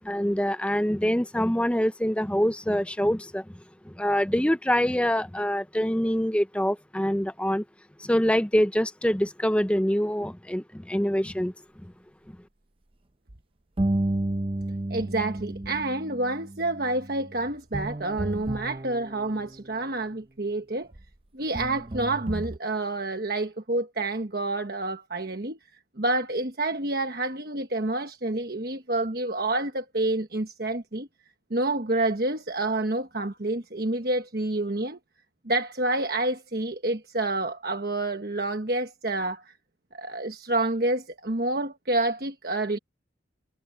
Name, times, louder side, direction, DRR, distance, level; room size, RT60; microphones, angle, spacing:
voice 1, 0.0-3.4 3.9-7.6 8.0-11.5, equal, 5° left, 0.6 m, -25 dB
sound 1, 13.8-19.7 20.9-21.0 21.5-22.6, right 1 dB, 30° right, 0.7 m, -32 dB
voice 2, 14.9-20.9 21.3-25.6 26.0-31.1 31.5-35.0 35.4-39.5 39.9-42.8, right 2 dB, 50° right, 1.3 m, -28 dB
head